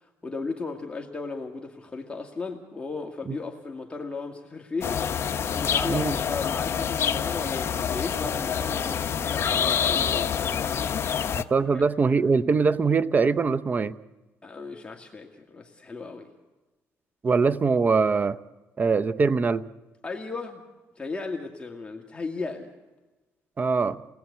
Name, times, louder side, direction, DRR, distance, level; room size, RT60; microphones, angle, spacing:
voice 1, 0.0-11.0 11.7-11.8 14.4-16.3 20.0-20.6 21.0-22.7, left 3 dB, 20° left, 1 dB, 1.9 m, -36 dB
sound 1, 4.8-11.4, left 8 dB, 50° left, 1.0 m, -27 dB
voice 2, 5.9-6.2 11.3-14.0 17.2-18.4 18.8-19.6 23.6-24.0, right 4 dB, 30° right, 15 dB, 0.8 m, -22 dB
29.5 x 19.0 x 8.3 m, 1.2 s
cardioid pair, 95°, 6 cm